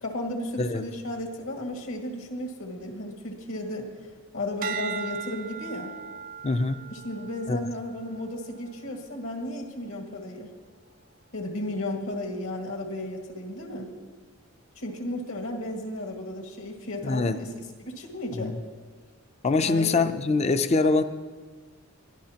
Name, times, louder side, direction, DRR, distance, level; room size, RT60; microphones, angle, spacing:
voice 1, 0.0-3.9 4.3-5.9 6.9-10.5 11.3-13.9 14.8-17.5 17.8-18.5 19.6-20.0, left 1 dB, 65° left, 1 dB, 1.9 m, -34 dB
sound 1, 4.6-9.1 9.6-10.0, right 7 dB, 40° right, 0.3 m, -38 dB
voice 2, 6.4-6.8 7.5-7.6 17.0-17.4 18.3-18.6 19.4-21.0, left 3 dB, 30° left, 11 dB, 0.4 m, -24 dB
22.0 x 12.5 x 2.9 m, 1.4 s
head